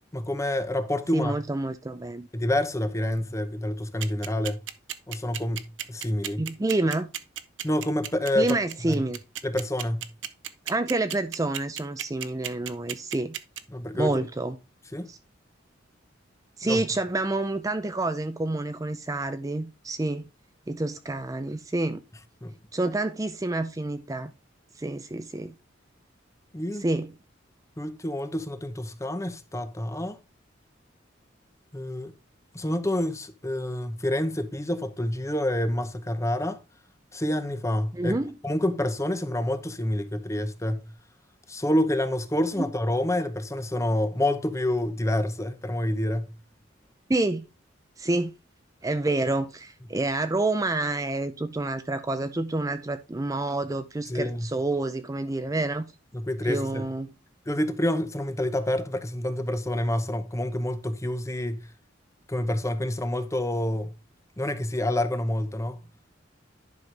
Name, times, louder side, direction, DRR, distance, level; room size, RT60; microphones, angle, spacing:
voice 1, 0.1-1.4 2.3-4.6 5.1-6.5 7.6-8.6 8.8-9.0 9.4-10.1 13.7-14.2 14.9-15.1 16.6-16.8 22.4-22.6 26.5-26.9 27.8-30.2 31.7-32.1 32.5-36.6 37.1-38.2 38.4-40.9 41.5-46.4 54.1-54.5 56.1-56.9 57.5-61.7 62.3-64.0 64.4-65.8, left 1 dB, 15° left, 0.8 m, -28 dB
voice 2, 1.1-2.3 6.4-7.1 8.4-9.2 10.7-13.3 13.9-14.6 15.1-15.2 16.6-20.3 20.7-22.0 22.7-24.3 24.8-25.5 26.8-27.1 37.9-38.3 42.6-42.7 47.1-47.4 48.0-48.3 48.8-55.9 56.5-57.1, right 2 dB, 20° right, 0.5 m, -28 dB
sound 1, 4.0-13.6, right 11 dB, 80° right, 0.9 m, -33 dB
10.5 x 5.7 x 3.3 m
head